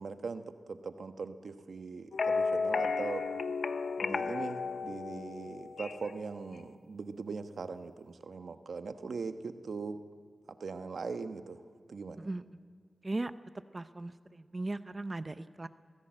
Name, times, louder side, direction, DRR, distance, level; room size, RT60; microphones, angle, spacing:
voice 1, 0.0-3.2 4.0-10.0 10.6-11.6 11.9-12.2, right 4 dB, 75° right, 8 dB, 1.2 m, -40 dB
sound 1, 2.1-6.2, left 4 dB, 80° left, 0.8 m, -33 dB
voice 2, 13.7-15.7, right 2 dB, 35° right, 12 dB, 0.7 m, -37 dB
24.0 x 16.5 x 7.7 m, 2.1 s
cardioid pair, 60°, 0 cm